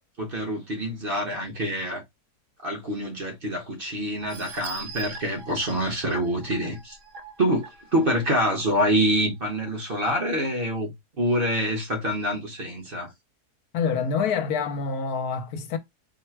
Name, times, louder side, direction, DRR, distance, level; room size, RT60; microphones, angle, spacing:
voice 1, 0.2-2.0 2.6-7.0 7.4-7.6 7.9-10.9 11.2-13.1, equal, 40° right, 1.0 m, -26 dB
sound 1, 4.2-8.7 9.2-9.3 9.7-9.8, right 5 dB, 80° right, 1.4 m, -42 dB
voice 2, 13.7-15.8, left 6 dB, 75° left, 1.2 m, -26 dB
4.8 x 2.2 x 4.5 m
omnidirectional pair, 1.7 m